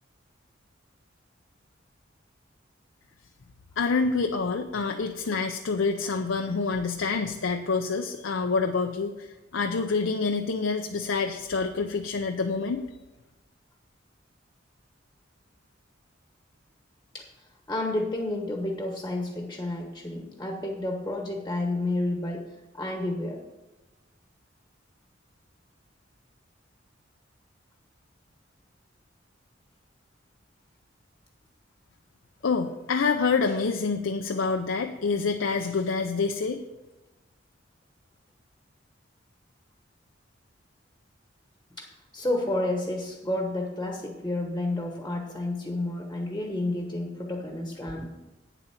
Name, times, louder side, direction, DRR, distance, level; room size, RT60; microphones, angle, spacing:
voice 1, 3.8-12.8 32.4-36.6, left 4 dB, 90° left, 4 dB, 0.6 m, -27 dB
voice 2, 17.7-22.4 22.7-23.4 41.8-48.1, left 2 dB, 15° left, 2 dB, 1.1 m, -30 dB
9.2 x 7.7 x 5.8 m, 1.1 s
head